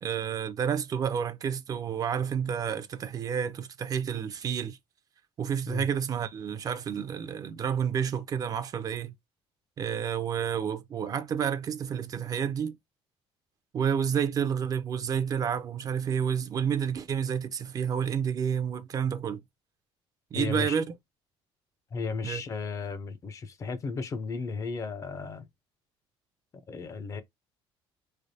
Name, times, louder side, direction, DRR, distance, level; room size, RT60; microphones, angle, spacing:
voice 1, 0.0-4.8 5.4-9.1 9.8-12.8 13.7-19.4 20.3-20.9 22.2-22.4, right 8 dB, 35° right, 0.4 m, -30 dB
voice 2, 20.3-20.8 21.9-25.5 26.7-27.2, left 4 dB, 30° left, 0.5 m, -34 dB
4.4 x 3.3 x 2.7 m
cardioid pair, 150°, 11 cm